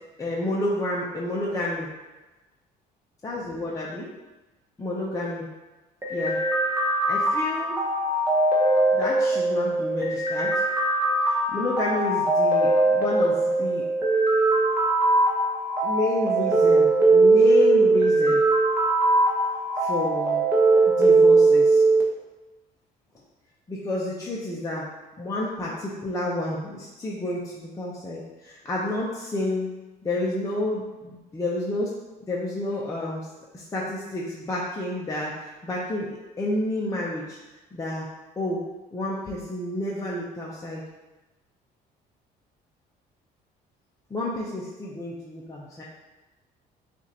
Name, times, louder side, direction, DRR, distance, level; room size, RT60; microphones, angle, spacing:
voice 1, 0.2-1.9 3.2-4.1 4.8-5.4 6.1-6.4 7.1-7.8 8.9-10.6 11.2-13.8 15.8-18.4 19.8-20.4 21.0-21.8 23.7-24.9 25.2-29.7 30.0-31.9 32.3-33.2 33.5-36.1 36.4-37.4 37.7-38.1 38.4-38.6 38.9-40.8 44.1-45.8, left 2 dB, 20° left, -5 dB, 0.7 m, -29 dB
sound 1, 6.0-22.0, right 2 dB, 15° right, 1.0 m, -20 dB
6.8 x 2.6 x 2.9 m, 1.1 s
cardioid pair, 110°, 17 cm